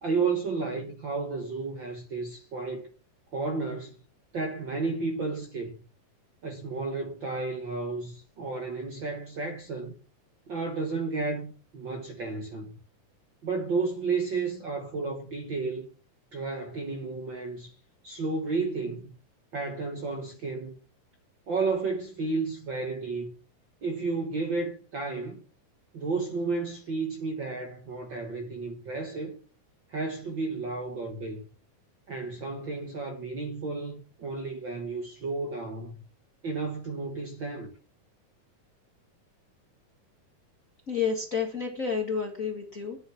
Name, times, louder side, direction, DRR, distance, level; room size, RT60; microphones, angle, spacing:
voice 1, 0.0-2.9 3.3-4.0 4.3-5.8 6.4-10.0 10.5-12.8 13.4-15.9 16.3-17.7 18.0-19.1 19.5-20.7 21.5-23.3 23.8-25.4 25.9-29.4 29.9-31.5 32.1-36.0 36.4-37.7, right 4 dB, 50° right, 1.5 m, -32 dB
voice 2, 40.9-43.0, left 6 dB, 35° left, 1.5 m, -30 dB
11.0 x 9.3 x 5.8 m
omnidirectional pair, 3.8 m